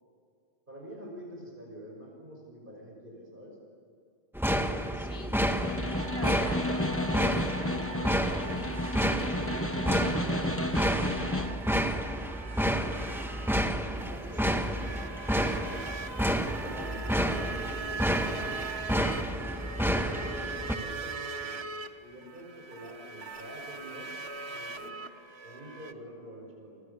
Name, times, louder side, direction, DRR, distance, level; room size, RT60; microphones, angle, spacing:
voice 1, 0.7-3.5 13.8-14.6 16.6-18.1 20.3-21.6 22.0-24.1 24.4-24.9 25.4-26.8, right 1 dB, 55° right, 0 dB, 6.0 m, -46 dB
sound 1, 4.3-20.7, equal, ahead, 1.6 m, -30 dB
voice 2, 4.9-5.4 6.0-9.0 9.4-12.0 13.9-14.6, left 1 dB, 90° left, 0 dB, 4.3 m, -48 dB
Snare drum, 5.5-11.6, left 1 dB, 15° left, 1.3 m, -32 dB
sound 2, 6.0-25.9, right 4 dB, 80° right, 1.6 m, -41 dB
29.0 x 25.5 x 7.0 m, 2.5 s
omnidirectional pair, 1.1 m